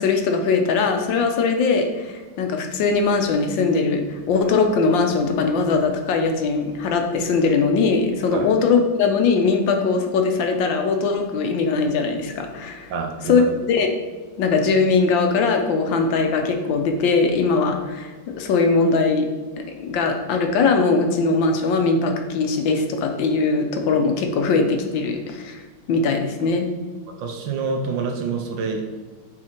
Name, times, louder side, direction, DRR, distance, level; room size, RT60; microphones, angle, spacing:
voice 1, 0.0-12.9 13.3-13.9 14.4-19.3 19.8-25.6 25.9-26.7, left 4 dB, 75° left, 4 dB, 1.5 m, -20 dB
voice 2, 12.9-13.5 27.1-28.9, right 4 dB, 75° right, 3 dB, 1.5 m, -27 dB
6.4 x 4.2 x 4.4 m, 1.3 s
omnidirectional pair, 2.1 m